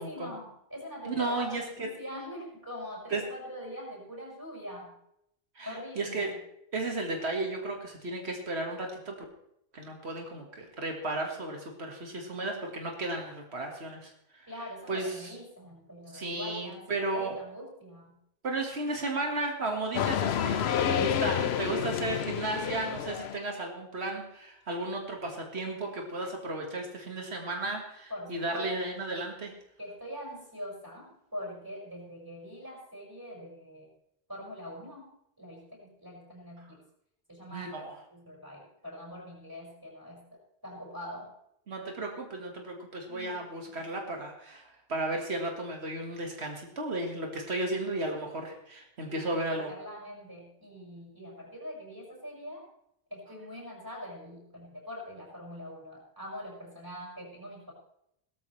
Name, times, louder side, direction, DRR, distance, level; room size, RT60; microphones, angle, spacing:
voice 1, 0.0-4.9 5.6-6.4 14.5-18.1 20.5-21.2 28.1-28.7 29.8-33.9 34.3-35.1 35.4-36.8 37.3-41.3 43.1-43.9 49.1-52.6 53.1-57.7, left 1 dB, 20° right, -3 dB, 5.8 m, -43 dB
voice 2, 1.1-1.9 3.1-3.2 5.6-6.3 6.7-9.2 9.7-14.5 14.9-15.4 16.1-17.4 18.4-20.6 20.9-29.5 37.5-37.9 41.7-49.7, right 2 dB, 90° right, 2 dB, 2.0 m, -34 dB
sound 1, 19.9-23.4, left 9 dB, 80° left, 1.0 m, -29 dB
17.0 x 14.0 x 3.2 m, 0.77 s
omnidirectional pair, 1.1 m